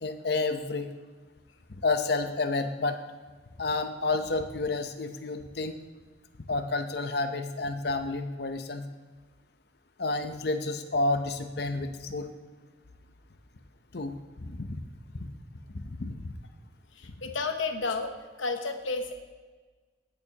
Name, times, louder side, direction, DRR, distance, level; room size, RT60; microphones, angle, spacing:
voice 1, 0.0-0.9 1.8-3.0 3.6-5.8 6.5-8.8 10.0-12.3 13.9-14.1 14.4-14.8 15.1-15.3 15.7-16.3, left 3 dB, 55° left, 7 dB, 0.7 m, -30 dB
voice 2, 17.0-18.1 18.4-19.1, left 3 dB, 90° left, 6 dB, 1.0 m, -31 dB
16.5 x 6.7 x 2.9 m, 1.4 s
head